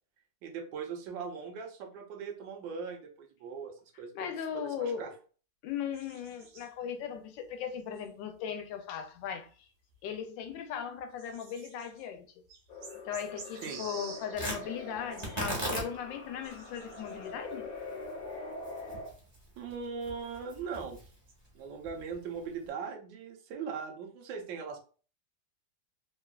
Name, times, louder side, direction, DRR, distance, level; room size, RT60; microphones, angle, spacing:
voice 1, 0.4-5.1 13.5-13.8 19.6-21.1 21.5-24.8, right 6 dB, 85° right, 1.3 m, -40 dB
voice 2, 4.1-5.1 5.6-9.5 10.0-12.3 13.1-17.7, left 8 dB, 90° left, 1.3 m, -38 dB
sound 1, 5.7-8.7 9.0-21.3, right 4 dB, 65° right, 1.1 m, -52 dB
sound 2, 12.7-19.1, left 2 dB, 60° left, 1.2 m, -44 dB
Tearing, 14.3-22.7, right 1 dB, 25° right, 0.6 m, -41 dB
3.4 x 2.3 x 2.2 m
omnidirectional pair, 2.0 m